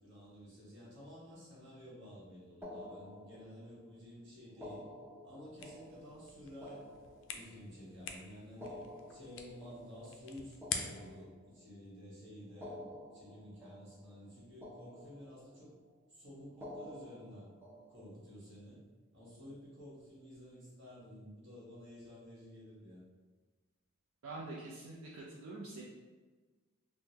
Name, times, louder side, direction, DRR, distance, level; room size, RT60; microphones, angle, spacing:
voice 1, 0.0-4.8 5.2-6.8 7.3-8.8 9.1-12.8 13.1-15.7 16.1-17.5 17.9-18.8 19.1-23.0, equal, 60° right, -7 dB, 1.2 m, -52 dB
sound 1, 2.6-3.9 4.5-7.8 8.5-11.8 12.5-14.3 14.6-15.7 16.5-18.3, left 1 dB, 10° right, 0.4 m, -51 dB
sound 2, 5.5-11.2, left 6 dB, 60° left, 0.3 m, -46 dB
voice 2, 24.2-25.8, right 2 dB, 80° right, -5 dB, 0.5 m, -45 dB
3.6 x 2.1 x 2.8 m, 1.3 s
head